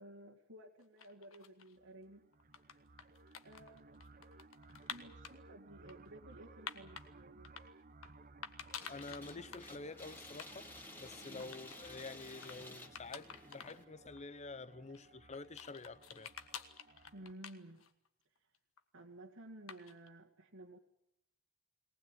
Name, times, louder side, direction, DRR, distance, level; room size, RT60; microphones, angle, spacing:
voice 1, 0.0-2.3 3.4-4.0 4.9-7.5 11.2-11.5 17.1-17.9 18.4-18.5 18.9-20.8, right 1 dB, 75° right, 2.2 m, -54 dB
sound 1, 0.8-1.8 2.3-5.3 5.9-7.1 7.4-8.1 8.4-9.7 10.0-10.1 10.3-10.5 10.8-12.1 12.4-12.6 12.9-13.8 14.2-14.3 14.9-18.1 18.4-19.0 19.7-20.1, left 7 dB, 75° left, 1.6 m, -50 dB
sound 2, 1.8-17.3, right 3 dB, 40° right, 1.1 m, -60 dB
sound 3, 8.8-13.8, left 1 dB, 10° left, 2.7 m, -53 dB
voice 2, 8.9-10.7 11.0-16.3, left 3 dB, 35° left, 0.8 m, -48 dB
21.5 x 19.5 x 9.0 m
head